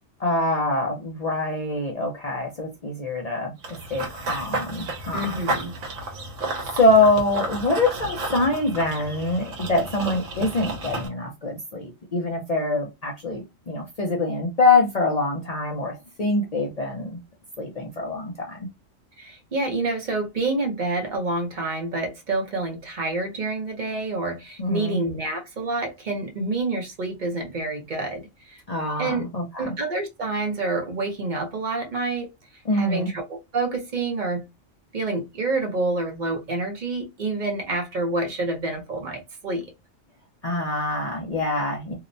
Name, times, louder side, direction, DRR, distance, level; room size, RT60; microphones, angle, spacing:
voice 1, 0.2-5.3 6.8-17.2 17.6-18.7 24.6-25.0 28.7-29.8 32.7-33.1 40.4-41.9, left 2 dB, 55° left, 0.4 m, -24 dB
Run / Bird vocalization bird call bird song, 3.6-11.1, right 2 dB, 70° right, 1.1 m, -32 dB
voice 2, 5.1-5.7 19.2-28.6 29.0-29.3 29.6-32.3 32.7-34.4 34.9-39.7, right 2 dB, 50° right, 0.6 m, -28 dB
2.8 x 2.0 x 2.6 m
omnidirectional pair, 1.3 m